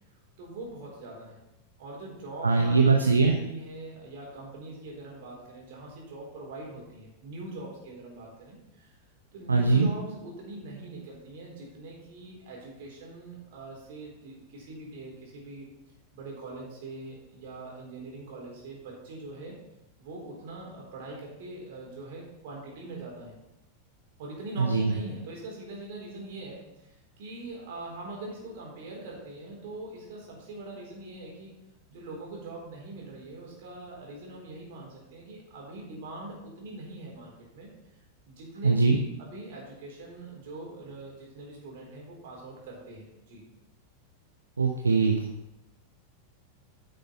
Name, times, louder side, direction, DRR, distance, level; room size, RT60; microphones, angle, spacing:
voice 1, 0.4-1.4 1.8-8.9 9.3-15.7 16.1-19.6 20.0-23.3 24.2-31.5 31.9-37.7 38.3-43.4, right 2 dB, 50° right, -2 dB, 4.0 m, -42 dB
voice 2, 2.4-3.3 9.5-9.9 24.6-24.9 38.6-39.0 44.6-45.3, right 4 dB, 75° right, 3 dB, 0.8 m, -21 dB
9.7 x 6.7 x 5.8 m, 0.93 s
figure-of-eight pair, 90°, 0 cm